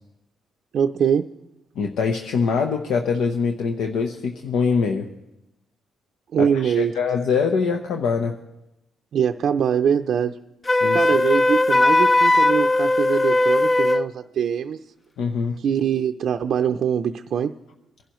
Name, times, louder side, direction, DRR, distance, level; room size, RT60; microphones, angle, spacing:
voice 1, 0.7-1.2 6.3-6.9 9.1-10.4 10.9-14.9 15.6-17.5, right 8 dB, 65° right, 5 dB, 0.5 m, -23 dB
voice 2, 1.8-5.1 6.4-8.3 10.8-11.1 15.2-15.6, left 5 dB, 80° left, 3 dB, 0.9 m, -23 dB
Wind instrument woodwind instrument, 10.7-14.1, left 2 dB, 25° left, 0.5 m, -18 dB
24.0 x 11.5 x 3.1 m, 0.89 s
cardioid pair, 90°, 0 cm